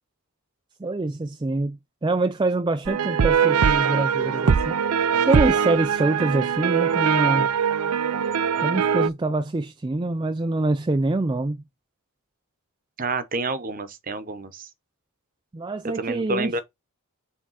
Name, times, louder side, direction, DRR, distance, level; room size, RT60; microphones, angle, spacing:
voice 1, 0.8-4.8 5.2-7.5 8.6-11.6 15.5-16.6, right 2 dB, 20° right, 0.4 m, -25 dB
sound 1, 2.9-9.1, right 7 dB, 85° right, 0.6 m, -22 dB
voice 2, 13.0-14.7 15.9-16.6, right 2 dB, 40° right, 0.9 m, -29 dB
7.2 x 3.6 x 4.1 m
head